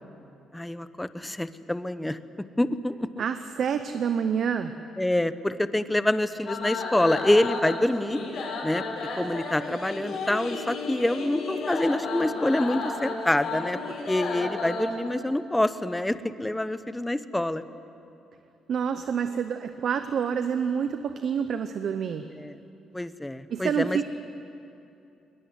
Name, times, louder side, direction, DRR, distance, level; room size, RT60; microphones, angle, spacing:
voice 1, 0.5-2.2 2.6-3.2 5.0-8.2 8.6-8.8 9.2-13.8 14.1-17.6 22.4-22.5 22.9-24.0, left 1 dB, 10° left, 13 dB, 0.9 m, -26 dB
voice 2, 3.2-4.7 18.7-22.2 23.5-24.0, right 7 dB, 65° right, 9 dB, 0.9 m, -27 dB
sound 1, 6.5-14.9, left 3 dB, 75° left, 5.5 m, -33 dB
21.0 x 20.5 x 9.7 m, 2.8 s
cardioid pair, 90°, 0 cm